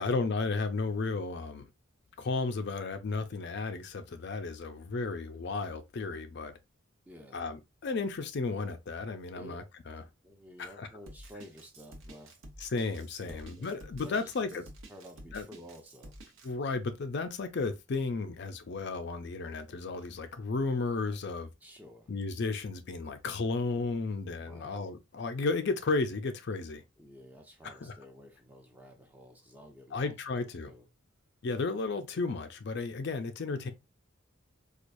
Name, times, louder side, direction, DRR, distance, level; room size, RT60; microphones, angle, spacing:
voice 1, 0.0-1.7 2.2-6.6 7.3-10.0 10.6-10.9 12.6-14.6 15.3-15.5 16.4-21.5 22.1-26.8 27.6-27.9 29.9-30.7 31.4-33.7, left 3 dB, 50° left, 0.4 m, -33 dB
voice 2, 7.1-7.4 9.3-9.6 10.2-12.7 13.2-16.2 21.6-22.1 24.2-24.9 27.0-30.9, equal, 10° right, 0.6 m, -52 dB
Drum kit, 11.1-16.5, right 1 dB, 65° right, 0.9 m, -50 dB
4.5 x 2.3 x 2.5 m
head